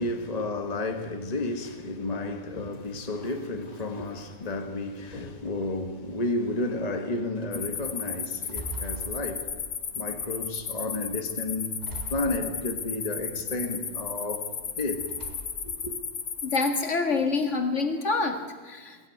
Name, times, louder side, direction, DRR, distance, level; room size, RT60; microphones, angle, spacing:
voice 1, 0.0-9.5 9.9-11.8 12.1-15.0 15.6-15.9, left 2 dB, 30° left, 1.5 m, -32 dB
sound 1, 2.7-4.6 5.1-5.8 6.6-6.7 7.1-7.5 8.0-10.0 10.4-10.9 11.8-13.0 13.4-14.0 15.0-15.8, right 2 dB, 30° right, 3.8 m, -44 dB
sound 2, 7.5-16.8, left 6 dB, 85° left, 1.9 m, -34 dB
voice 2, 16.4-19.0, left 3 dB, 55° left, 2.2 m, -27 dB
22.5 x 15.0 x 9.2 m
omnidirectional pair, 1.5 m